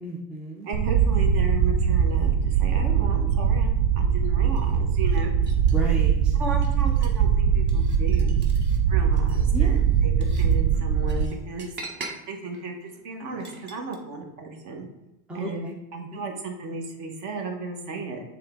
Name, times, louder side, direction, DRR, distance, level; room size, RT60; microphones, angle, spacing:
voice 1, 0.0-0.7 5.7-6.3 9.5-9.8 15.3-15.7 16.1-16.2, right 1 dB, 5° right, -2 dB, 0.4 m, -33 dB
voice 2, 0.6-5.4 6.3-8.3 8.9-11.7 12.3-14.9 15.3-15.6 15.9-18.2, right 3 dB, 45° right, 3 dB, 1.3 m, -35 dB
sound 1, 0.7-11.2, right 7 dB, 75° right, 0.7 m, -21 dB
sound 2, 4.5-6.0 6.5-7.2 7.7-8.8 9.1-13.9, right 2 dB, 25° right, 0.9 m, -43 dB
7.4 x 3.5 x 3.7 m, 0.99 s
supercardioid pair, 135°, 43 cm